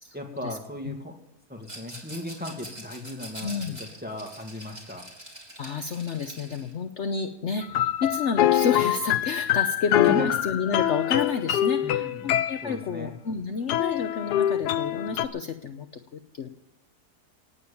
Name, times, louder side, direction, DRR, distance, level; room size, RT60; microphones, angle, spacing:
voice 1, 0.1-1.2 1.5-5.0 10.0-10.3 11.8-12.3 12.6-13.1, left 1 dB, 5° right, 1 dB, 2.1 m, -36 dB
Rattle, 1.6-6.7, right 1 dB, 25° right, 3.9 m, -44 dB
voice 2, 3.4-3.8 5.6-15.9 16.1-16.5, left 5 dB, 55° left, 6 dB, 1.1 m, -30 dB
sound 1, 7.6-12.7 13.7-15.3, left 12 dB, 90° left, 1.3 m, -24 dB
18.5 x 8.7 x 7.0 m, 0.95 s
omnidirectional pair, 1.7 m